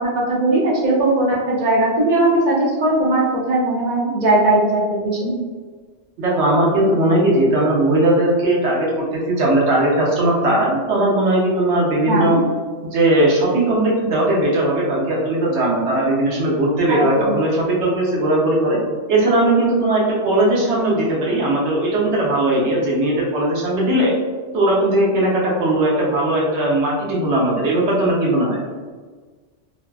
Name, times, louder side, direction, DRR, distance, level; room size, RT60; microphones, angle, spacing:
voice 1, 0.0-5.3 12.1-12.4 16.9-17.4, right 2 dB, 50° right, -3 dB, 0.5 m, -19 dB
voice 2, 6.2-12.4 12.8-18.8 19.1-24.1 24.5-28.6, right 1 dB, 70° right, -4 dB, 1.0 m, -18 dB
2.6 x 2.2 x 2.3 m, 1.4 s
omnidirectional pair, 1.2 m